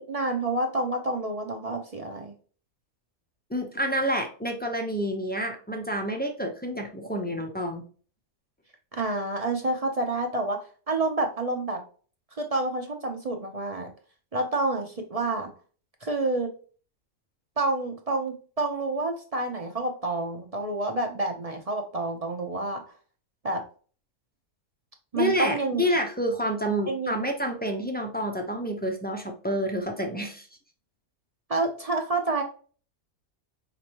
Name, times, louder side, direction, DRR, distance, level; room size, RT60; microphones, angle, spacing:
voice 1, 0.1-2.3 8.9-10.6 10.9-11.8 12.4-13.9 14.3-15.5 16.0-16.5 17.6-22.8 23.4-23.6 25.1-25.8 26.9-27.2 31.5-32.4, right 2 dB, 40° right, 3 dB, 0.5 m, -28 dB
voice 2, 3.5-7.8 25.1-30.5, equal, 15° left, 2 dB, 0.3 m, -28 dB
5.1 x 3.1 x 2.8 m, 0.40 s
omnidirectional pair, 1.5 m